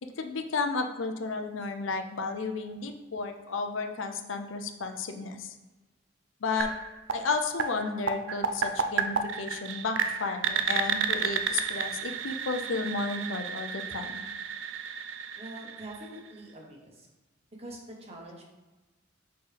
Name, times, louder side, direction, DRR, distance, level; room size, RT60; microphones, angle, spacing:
voice 1, 0.0-5.5 6.4-6.7 7.1-14.2, left 4 dB, 75° left, 6 dB, 0.6 m, -33 dB
sound 1, 6.6-16.4, right 6 dB, 70° right, 0.5 m, -32 dB
voice 2, 15.4-17.1 17.6-18.4, right 1 dB, 35° right, -1 dB, 1.2 m, -44 dB
6.5 x 4.4 x 3.4 m, 1.1 s
head